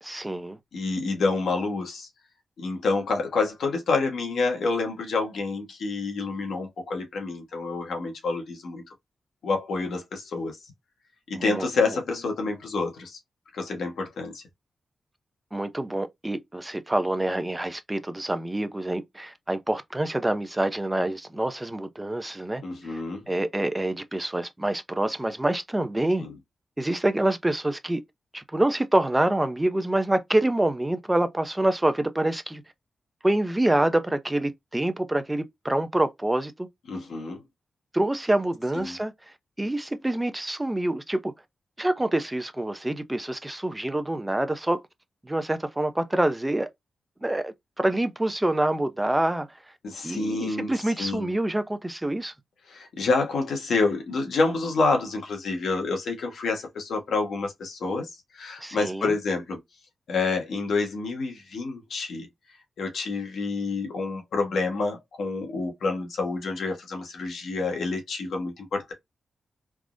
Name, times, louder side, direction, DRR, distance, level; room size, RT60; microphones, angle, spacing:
voice 1, 0.0-0.6 11.3-11.7 15.5-26.2 26.8-28.0 28.3-32.6 33.2-36.7 37.9-39.1 39.6-41.3 41.8-44.8 45.2-46.7 47.2-49.5 50.0-52.3 58.6-59.1, right 1 dB, 15° right, 0.5 m, -26 dB
voice 2, 0.7-2.1 2.6-8.8 9.4-10.6 11.3-13.2 13.5-14.4 22.6-23.2 26.2-26.3 36.9-37.4 38.8-38.9 49.8-50.7 51.0-51.3 52.7-59.6 60.1-62.3 62.8-68.9, left 3 dB, 85° left, 1.1 m, -28 dB
3.5 x 2.0 x 2.4 m
cardioid pair, 70°, 0 cm